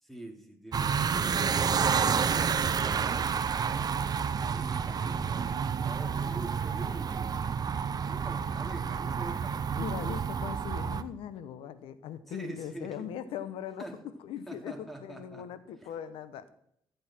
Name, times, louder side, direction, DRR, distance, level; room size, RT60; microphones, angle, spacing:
voice 1, 0.0-7.4 8.0-10.2 12.3-13.1 13.8-14.0 14.5-15.5 15.8-15.9, right 1 dB, ahead, 3 dB, 2.8 m, -45 dB
sound 1, 0.7-11.0, right 6 dB, 45° right, 0.7 m, -29 dB
voice 2, 9.8-13.9 14.2-16.5, left 9 dB, 85° left, 13 dB, 1.0 m, -40 dB
15.0 x 8.1 x 4.5 m, 0.71 s
cardioid pair, 75°, 9 cm